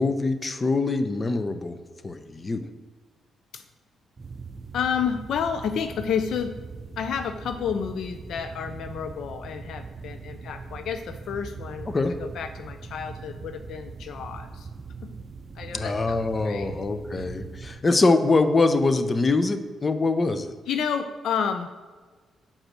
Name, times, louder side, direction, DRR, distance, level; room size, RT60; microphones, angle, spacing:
voice 1, 0.0-1.8 2.0-2.6 11.9-12.1 15.7-20.5, left 3 dB, 35° left, 10 dB, 0.7 m, -23 dB
sound 1, 4.2-17.9, right 4 dB, 45° right, 0.5 m, -41 dB
voice 2, 4.7-6.6 7.0-11.9 12.2-14.7 15.0-15.1 15.6-16.7 17.2-17.3 20.7-21.7, left 7 dB, 75° left, 8 dB, 0.5 m, -30 dB
7.3 x 5.1 x 6.1 m, 1.4 s
supercardioid pair, 60°, 0 cm